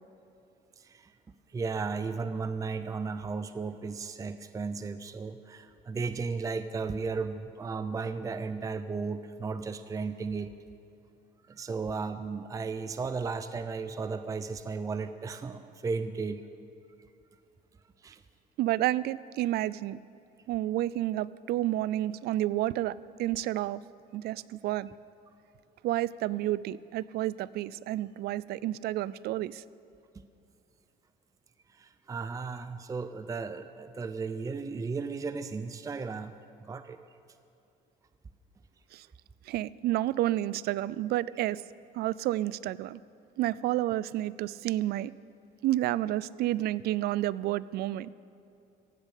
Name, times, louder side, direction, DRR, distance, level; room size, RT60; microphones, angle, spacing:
voice 1, 0.8-1.1 1.5-10.5 11.5-16.4 18.0-18.2 31.7-37.0, right 4 dB, 20° right, 11 dB, 0.5 m, -35 dB
voice 2, 18.6-20.0 20.5-23.8 24.1-24.9 25.8-29.6 38.9-39.1 39.5-41.6 41.9-43.0 43.4-45.1 45.6-48.1, right 14 dB, 70° right, 20 dB, 0.4 m, -30 dB
15.5 x 8.4 x 8.3 m, 2.6 s
cardioid pair, 110°, 17 cm